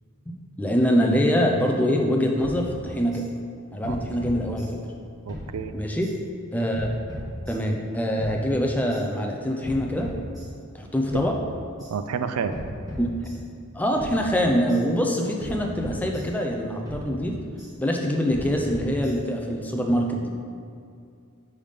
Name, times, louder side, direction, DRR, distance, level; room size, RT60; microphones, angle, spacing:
voice 1, 0.6-3.2 3.7-4.7 5.7-6.1 6.5-6.9 7.5-10.1 10.7-11.4 13.0-13.5 13.7-17.4 17.8-20.3, equal, 5° left, 1 dB, 0.4 m, -24 dB
sound 1, 2.4-3.3 3.8-5.0 5.3-6.2 6.7-7.8 8.2-9.0 9.6-10.8 11.1-11.9 12.5-13.7 14.0-14.8 15.4-16.6 16.9-17.7 18.3-19.5, equal, 15° right, 1.4 m, -37 dB
voice 2, 5.3-5.8 11.9-12.5, right 6 dB, 90° right, 9 dB, 0.4 m, -29 dB
5.5 x 3.6 x 4.9 m, 2.4 s
head